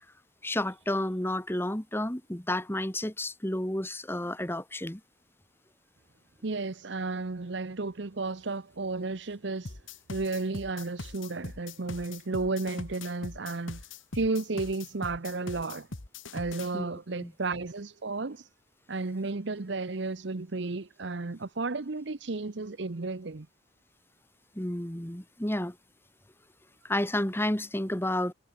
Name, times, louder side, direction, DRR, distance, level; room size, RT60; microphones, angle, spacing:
voice 1, 0.4-5.0 16.7-16.9 17.2-17.3 24.5-25.8 26.8-28.3, left 1 dB, 10° left, 1.6 m, -31 dB
voice 2, 6.4-9.8 10.1-13.8 14.1-15.9 16.3-18.5 18.9-23.5, right 3 dB, 60° right, 0.8 m, -33 dB
sound 1, 9.7-16.7, left 3 dB, 75° left, 1.8 m, -41 dB
head